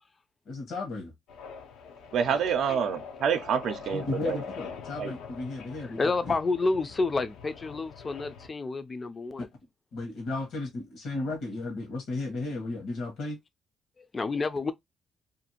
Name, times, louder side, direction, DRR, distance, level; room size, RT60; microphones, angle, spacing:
voice 1, 0.5-1.1 3.9-6.3 9.9-13.4, left 3 dB, 75° left, 1.0 m, -34 dB
sound 1, 1.3-8.5, left 6 dB, 90° left, 0.5 m, -44 dB
voice 2, 2.1-4.4 5.0-5.1, right 7 dB, 75° right, 0.4 m, -27 dB
voice 3, 5.8-9.5 14.0-14.7, left 3 dB, 30° left, 0.4 m, -29 dB
2.6 x 2.4 x 2.8 m
cardioid pair, 90°, 0 cm